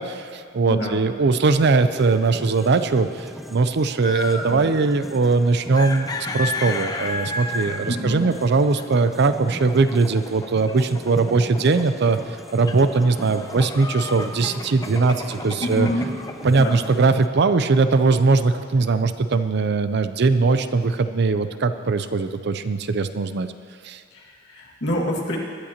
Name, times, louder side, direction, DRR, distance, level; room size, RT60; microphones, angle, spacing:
voice 1, 0.0-6.1 6.3-12.2 12.5-15.9 16.4-23.5 23.8-24.0, right 3 dB, 60° right, 11 dB, 0.5 m, -20 dB
voice 2, 0.7-1.0 4.5-4.6 7.9-8.3 15.6-16.1 16.6-16.8 24.1-25.4, left 1 dB, 60° left, -3 dB, 2.0 m, -27 dB
sound 1, 1.9-17.3, equal, ahead, 0.3 m, -39 dB
sound 2, 4.0-4.6 5.6-17.1, left 3 dB, 20° left, 0.7 m, -33 dB
20.5 x 11.5 x 2.9 m, 2.1 s
head